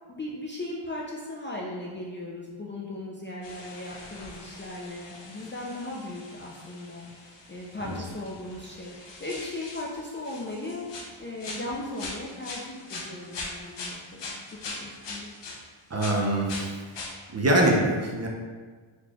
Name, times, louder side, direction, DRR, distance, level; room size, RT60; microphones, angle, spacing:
voice 1, 0.1-7.1 7.5-14.4 14.8-15.3, left 1 dB, 25° left, -4 dB, 0.4 m, -37 dB
sound 1, 3.4-15.6 16.0-17.2, left 3 dB, 60° left, 0.7 m, -42 dB
voice 2, 15.9-16.7 17.3-18.3, right 1 dB, 30° right, -1 dB, 0.6 m, -23 dB
4.1 x 3.1 x 2.3 m, 1.5 s
cardioid pair, 75°, 50 cm